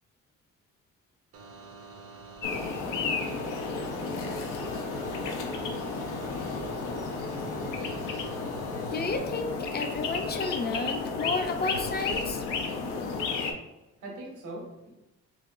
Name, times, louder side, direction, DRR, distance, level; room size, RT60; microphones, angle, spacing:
sound 1, 1.3-9.2, right 4 dB, 50° right, 0.6 m, -47 dB
sound 2, 2.4-13.5, left 4 dB, 85° left, 0.6 m, -32 dB
voice 1, 2.4-5.3 5.7-7.5 14.0-14.9, right 1 dB, 80° right, -2 dB, 1.4 m, -47 dB
voice 2, 8.9-12.4, left 3 dB, 35° left, 5 dB, 0.5 m, -32 dB
4.0 x 2.9 x 2.5 m, 0.97 s
cardioid pair, 90°, 30 cm